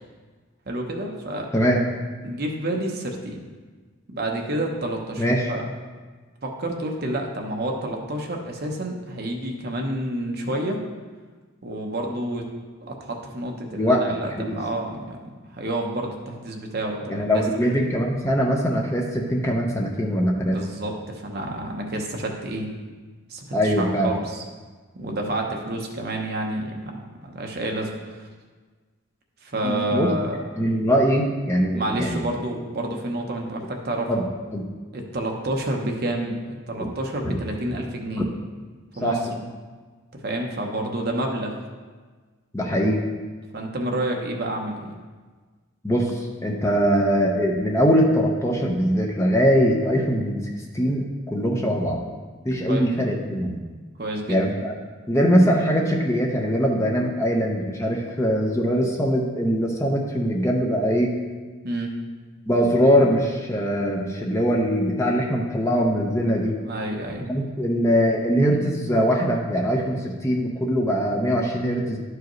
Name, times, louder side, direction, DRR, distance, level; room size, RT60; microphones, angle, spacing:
voice 1, 0.7-1.5 2.2-3.4 4.1-5.7 6.4-10.8 11.6-12.5 12.8-15.2 15.4-17.4 17.8-17.9 20.4-22.7 23.3-24.4 24.9-28.3 29.4-30.4 31.7-34.1 34.9-38.2 38.9-39.1 40.2-41.5 43.5-44.9 52.7-52.8 54.0-54.4 61.6-62.0 66.6-67.3, right 1 dB, 45° right, 1 dB, 0.9 m, -29 dB
voice 2, 5.2-5.5 13.7-14.6 17.1-20.6 23.5-24.1 29.6-30.1 30.6-32.2 34.1-34.2 34.5-34.7 36.8-36.9 37.2-37.4 38.2-38.3 39.0-39.4 42.5-43.0 45.8-52.0 52.4-53.6 54.3-54.7 55.1-61.2 62.5-66.6 67.3-72.0, equal, 15° left, 0 dB, 0.6 m, -22 dB
11.5 x 4.8 x 3.1 m, 1.4 s
head